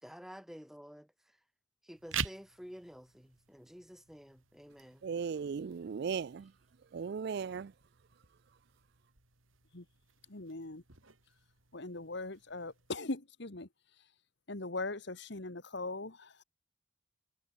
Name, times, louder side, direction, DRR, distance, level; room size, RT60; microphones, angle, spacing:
voice 1, 0.0-1.1 1.8-5.0, equal, ahead, 2.2 m, -51 dB
sound 1, 1.9-12.9, right 7 dB, 75° right, 3.9 m, -47 dB
voice 2, 5.0-6.4 6.9-7.7, right 6 dB, 55° right, 0.3 m, -36 dB
voice 3, 10.3-10.8 11.7-13.7 14.5-16.4, left 2 dB, 55° left, 1.7 m, -40 dB
head